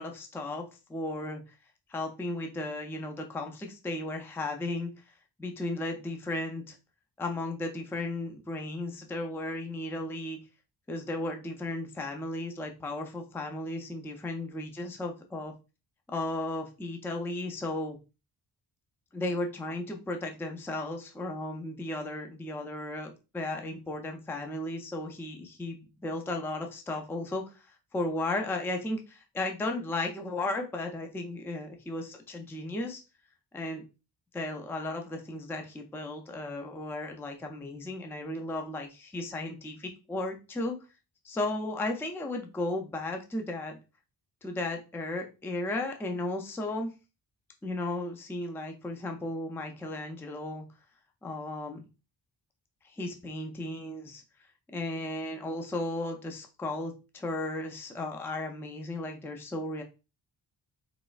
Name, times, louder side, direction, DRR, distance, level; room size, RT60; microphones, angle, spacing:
voice 1, 0.0-1.4 1.9-5.1 5.4-6.8 7.2-10.4 10.9-15.5 16.1-18.0 19.1-33.0 33.5-33.8 34.3-40.8 41.2-43.8 44.4-46.9 47.6-50.7 51.2-51.8 52.8-54.2 54.7-59.8, left 2 dB, 5° left, 3 dB, 0.3 m, -35 dB
3.9 x 3.0 x 2.3 m, 0.30 s
wide cardioid pair, 145°, 43 cm